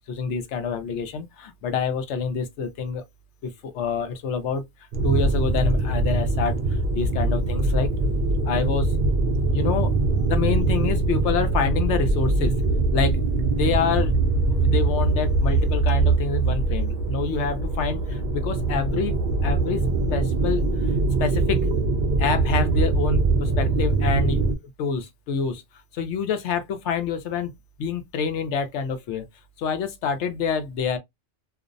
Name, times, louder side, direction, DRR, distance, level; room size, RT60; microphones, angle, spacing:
voice 1, 0.1-3.0 3.4-4.6 5.0-7.9 8.4-8.9 9.5-9.9 10.3-12.6 12.9-13.2 13.5-14.1 14.5-19.8 20.1-20.7 21.2-21.6 22.2-24.4 24.8-25.6 25.9-27.5 27.8-29.3 29.6-31.0, left 5 dB, 70° left, 0.9 m, -27 dB
sound 1, 4.9-24.6, right 3 dB, 65° right, 0.5 m, -22 dB
2.5 x 2.0 x 2.4 m
omnidirectional pair, 1.3 m